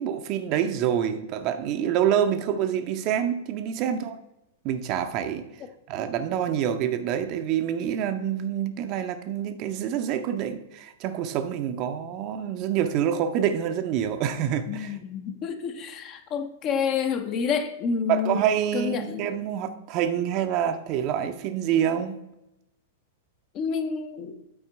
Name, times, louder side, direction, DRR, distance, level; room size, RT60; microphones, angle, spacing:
voice 1, 0.0-4.2 4.6-5.5 5.9-15.0 18.1-22.2, right 9 dB, 40° right, 0.6 m, -26 dB
voice 2, 14.7-18.4 18.7-19.3 23.5-24.3, left 6 dB, 35° left, 0.7 m, -29 dB
8.7 x 4.4 x 4.6 m
figure-of-eight pair, 100°, 0 cm